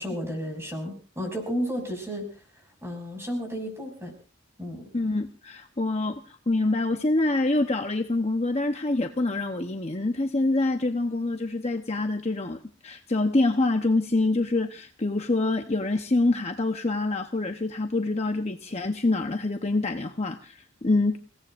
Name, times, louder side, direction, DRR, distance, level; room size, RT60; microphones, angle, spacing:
voice 1, 0.0-2.3 2.8-4.1 4.6-4.9, equal, 10° right, 2 dB, 6.4 m, -32 dB
voice 2, 4.9-21.2, left 2 dB, 30° left, 5 dB, 0.9 m, -26 dB
29.5 x 17.5 x 2.5 m, 0.35 s
head